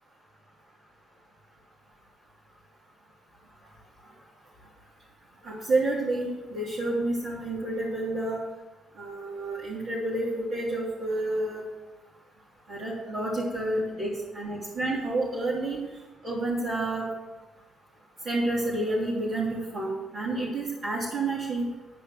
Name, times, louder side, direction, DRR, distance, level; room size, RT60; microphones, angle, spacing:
voice 1, 5.4-8.4 9.0-11.6 12.7-15.8 16.2-17.0 18.2-21.6, right 2 dB, 55° right, -8 dB, 3.0 m, -29 dB
10.0 x 5.1 x 8.1 m, 1.1 s
cardioid pair, 90°, 0 cm